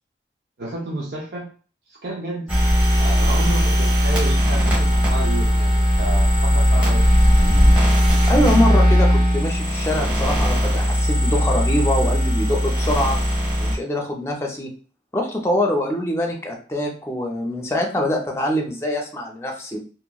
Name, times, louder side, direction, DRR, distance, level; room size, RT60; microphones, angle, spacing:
voice 1, 0.6-1.5 1.9-2.5 3.0-7.1, right 2 dB, 80° right, -4 dB, 0.7 m, -31 dB
sound 1, 2.5-13.8, equal, 5° right, 1.0 m, -18 dB
voice 2, 8.3-13.2 13.6-14.7 15.1-19.8, left 1 dB, 15° left, 1 dB, 0.5 m, -24 dB
2.9 x 2.6 x 2.3 m, 0.39 s
head